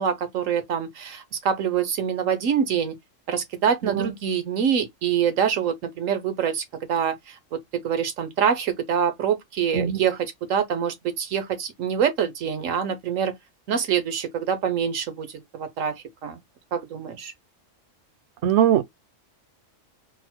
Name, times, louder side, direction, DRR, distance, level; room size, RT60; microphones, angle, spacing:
voice 1, 0.0-2.9 3.3-7.4 7.7-13.3 13.7-15.9 16.2-16.4 16.7-17.3, right 8 dB, 85° right, 1.2 m, -25 dB
voice 2, 18.4-18.8, right 10 dB, 65° right, 0.9 m, -20 dB
4.0 x 2.1 x 4.3 m
omnidirectional pair, 1.3 m